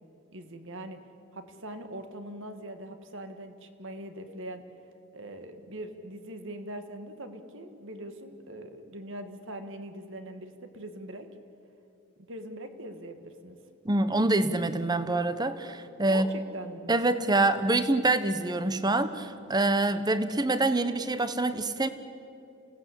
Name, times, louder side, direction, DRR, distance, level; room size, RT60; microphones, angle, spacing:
voice 1, 0.3-1.0 1.3-4.6 5.1-11.3 12.3-13.6 16.1-16.9, right 1 dB, 60° right, 8 dB, 1.7 m, -41 dB
voice 2, 13.8-16.3 16.9-21.9, right 2 dB, 20° right, 12 dB, 0.9 m, -26 dB
27.5 x 17.0 x 8.4 m, 2.7 s
head